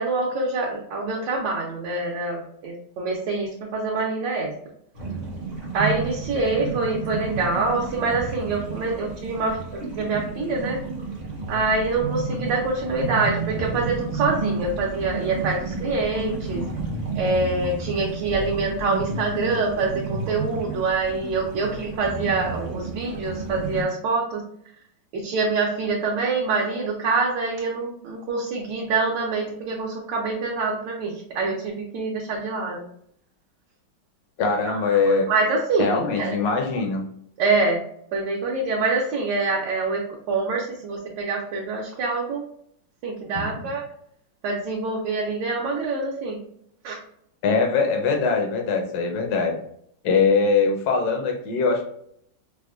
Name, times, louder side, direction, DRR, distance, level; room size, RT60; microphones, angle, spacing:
voice 1, 0.0-4.5 5.7-9.6 10.0-10.8 11.5-16.7 17.1-24.4 25.1-32.8 34.7-36.3 37.4-37.8 38.1-42.4 43.0-43.9 44.4-46.4 46.8-47.0, right 3 dB, 75° right, -2 dB, 1.3 m, -25 dB
sound 1, 4.9-23.8, right 3 dB, 45° right, 0.6 m, -31 dB
voice 2, 34.4-35.3 35.8-37.0 43.3-43.5 47.4-49.5 50.0-51.8, left 4 dB, 65° left, 2 dB, 1.2 m, -22 dB
4.8 x 2.1 x 2.4 m, 0.68 s
omnidirectional pair, 2.0 m